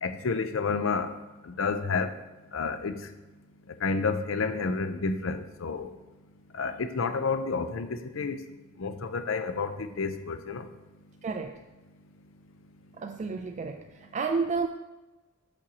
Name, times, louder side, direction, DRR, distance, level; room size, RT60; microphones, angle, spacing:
voice 1, 0.0-1.1 1.6-2.1 2.5-3.0 3.8-5.9 6.6-8.4 8.8-10.6, left 4 dB, 75° left, 10 dB, 0.5 m, -30 dB
voice 2, 11.2-11.5 13.0-14.7, right 4 dB, 35° right, 4 dB, 0.3 m, -31 dB
8.6 x 6.2 x 2.9 m, 1.1 s
head